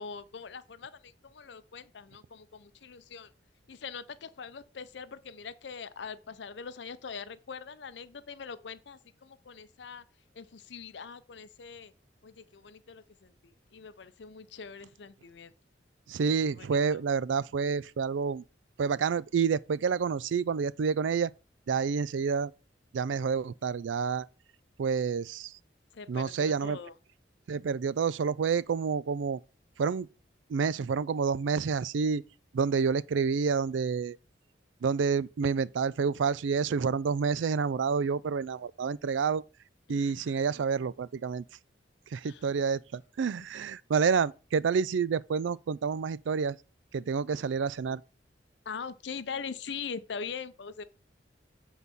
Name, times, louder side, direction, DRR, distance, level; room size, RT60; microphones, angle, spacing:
voice 1, 0.0-3.3 3.7-10.0 10.3-11.9 12.2-15.5 16.4-17.0 25.9-26.9 39.9-40.3 42.2-42.5 48.7-50.8, left 6 dB, 65° left, 0.6 m, -42 dB
voice 2, 16.1-18.4 18.8-21.3 21.7-22.5 22.9-24.3 24.8-25.5 26.1-26.8 27.5-29.4 29.8-30.1 30.5-32.2 32.5-34.2 34.8-39.4 39.9-41.4 42.1-46.6 46.9-48.0, right 5 dB, 80° right, 0.4 m, -28 dB
8.3 x 4.0 x 5.4 m
head